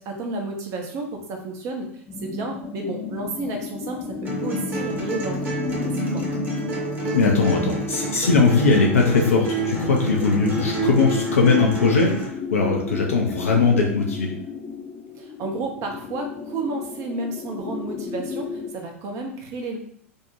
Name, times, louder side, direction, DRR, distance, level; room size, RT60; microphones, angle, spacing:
voice 1, 0.0-6.3 15.2-19.8, right 2 dB, 40° right, 2 dB, 0.7 m, -31 dB
sound 1, 2.1-18.7, left 5 dB, 20° left, 0.5 m, -33 dB
sound 2, 4.2-12.2, right 2 dB, 25° right, 1.0 m, -28 dB
voice 2, 7.1-14.3, left 4 dB, 80° left, 0 dB, 0.4 m, -20 dB
2.6 x 2.1 x 2.8 m, 0.63 s
figure-of-eight pair, 90°, 7 cm